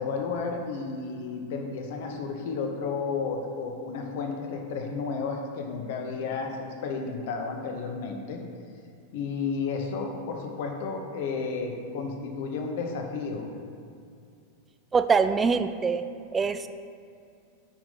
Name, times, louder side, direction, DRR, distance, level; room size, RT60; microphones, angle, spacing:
voice 1, 0.0-8.4 9.1-13.5, left 4 dB, 50° left, 3 dB, 0.9 m, -32 dB
voice 2, 14.9-16.0 16.3-16.7, right 5 dB, 15° right, 10 dB, 0.3 m, -23 dB
5.8 x 4.7 x 5.4 m, 2.4 s
figure-of-eight pair, 90°, 0 cm